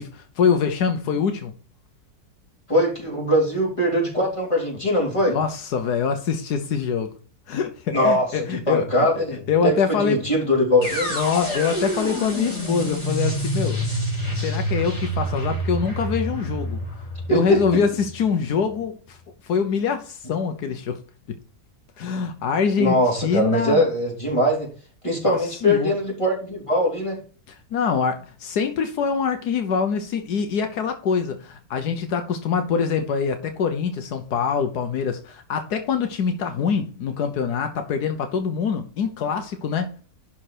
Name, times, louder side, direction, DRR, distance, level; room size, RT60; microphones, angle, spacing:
voice 1, 0.0-1.5 5.3-7.1 7.5-10.2 10.8-13.8 14.3-16.8 17.3-19.2 19.4-21.0 22.0-23.8 25.3-25.9 27.5-40.0, left 6 dB, 80° left, 1.5 m, -24 dB
voice 2, 2.7-5.4 7.9-11.2 17.3-17.6 22.8-24.7 25.0-27.2, equal, 20° left, 3.6 m, -21 dB
sound 1, 10.8-18.8, equal, 45° left, 4.0 m, -27 dB
11.5 x 4.4 x 4.4 m
omnidirectional pair, 1.7 m